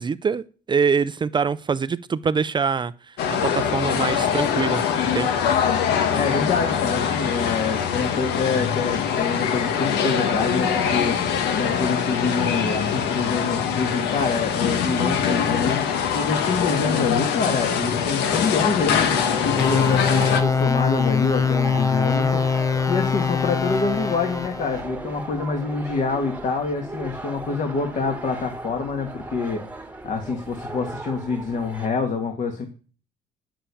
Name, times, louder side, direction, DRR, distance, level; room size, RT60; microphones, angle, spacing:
voice 1, 0.0-3.2 3.4-4.8 5.1-5.3, right 5 dB, 25° right, 0.5 m, -24 dB
sound 1, 3.2-20.4, left 7 dB, 85° left, 1.4 m, -23 dB
voice 2, 6.1-11.2 11.6-32.7, left 4 dB, 45° left, 2.1 m, -26 dB
sound 2, 18.8-31.9, right 2 dB, 10° right, 1.4 m, -36 dB
sound 3, 19.6-24.8, left 5 dB, 20° left, 0.7 m, -23 dB
10.0 x 7.6 x 8.4 m
cardioid pair, 110°, 17 cm